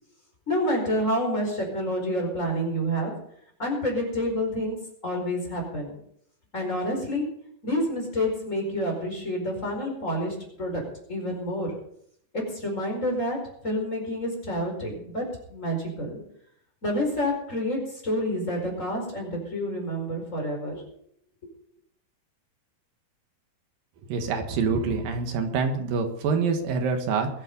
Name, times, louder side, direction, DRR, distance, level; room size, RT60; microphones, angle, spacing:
voice 1, 0.5-3.1 3.6-4.8 5.0-5.9 6.5-7.2 7.6-10.8 11.1-11.7 12.3-16.2 16.8-20.8, equal, 20° left, 1 dB, 5.0 m, -28 dB
voice 2, 24.1-27.3, right 5 dB, 85° right, 5 dB, 3.4 m, -26 dB
22.0 x 9.1 x 5.4 m, 0.68 s
omnidirectional pair, 3.9 m